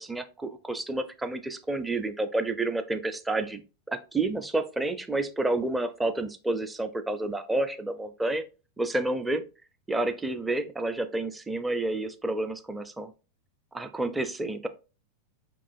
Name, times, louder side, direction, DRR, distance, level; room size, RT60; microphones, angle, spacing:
voice 1, 0.0-8.4 8.8-9.5 9.9-13.1 13.7-14.7, right 2 dB, 10° right, 9 dB, 0.5 m, -30 dB
5.2 x 3.0 x 2.6 m, 0.31 s
figure-of-eight pair, 90°, 0 cm